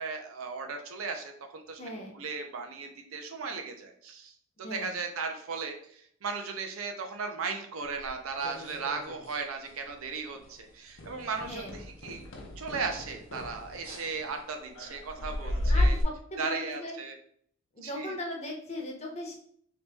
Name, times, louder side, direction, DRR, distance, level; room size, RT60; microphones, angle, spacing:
voice 1, 0.0-4.3 4.7-12.3 12.6-15.9 16.4-17.2 17.8-18.1, right 4 dB, 75° right, 4 dB, 0.6 m, -36 dB
voice 2, 1.8-2.2 4.6-5.0 11.5-11.8 15.7-17.0 17.7-19.3, left 1 dB, 30° left, 0 dB, 0.7 m, -38 dB
sound 1, 8.0-9.4 9.7-10.0 10.4-10.5 11.0-16.0, left 1 dB, 65° left, 0.7 m, -33 dB
3.0 x 2.9 x 3.4 m, 0.64 s
head